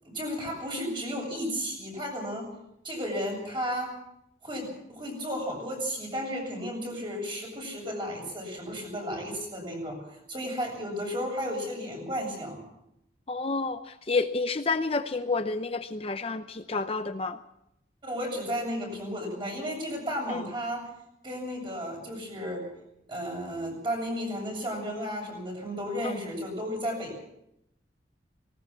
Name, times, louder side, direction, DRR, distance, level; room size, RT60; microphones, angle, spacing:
voice 1, 0.0-2.5 2.8-3.9 4.4-10.0 10.3-12.6 18.0-20.9 21.2-22.6 23.1-27.2, equal, 25° right, 1 dB, 7.7 m, -33 dB
voice 2, 13.3-17.4 20.3-20.5 26.0-26.2, left 3 dB, 30° left, 9 dB, 0.7 m, -30 dB
19.0 x 18.5 x 7.2 m, 0.81 s
head